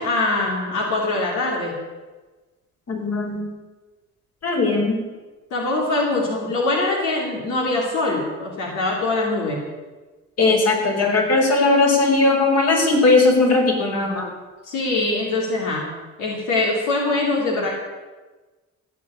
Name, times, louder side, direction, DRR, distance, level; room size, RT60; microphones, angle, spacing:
voice 1, 0.0-1.7 5.5-9.6 14.6-15.9 16.2-17.7, left 2 dB, 85° left, -2 dB, 3.1 m, -23 dB
voice 2, 2.9-3.5 4.4-5.0 10.4-14.3, left 3 dB, 55° left, 1 dB, 4.7 m, -18 dB
16.0 x 8.5 x 8.6 m, 1.2 s
cardioid pair, 90°, 30 cm